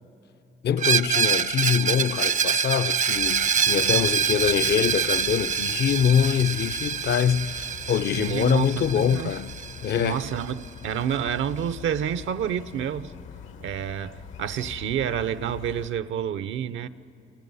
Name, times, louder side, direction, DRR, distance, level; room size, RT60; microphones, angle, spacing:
voice 1, 0.6-9.5 9.8-10.2, left 8 dB, 55° left, 0.5 m, -24 dB
Screech, 0.8-10.4, right 7 dB, 40° right, 0.5 m, -26 dB
sound 1, 3.1-15.9, left 7 dB, 85° left, 1.2 m, -43 dB
voice 2, 8.1-9.4 9.9-13.1 13.6-16.9, right 9 dB, 75° right, 0.7 m, -29 dB
29.0 x 27.0 x 5.5 m
cardioid pair, 90°, 20 cm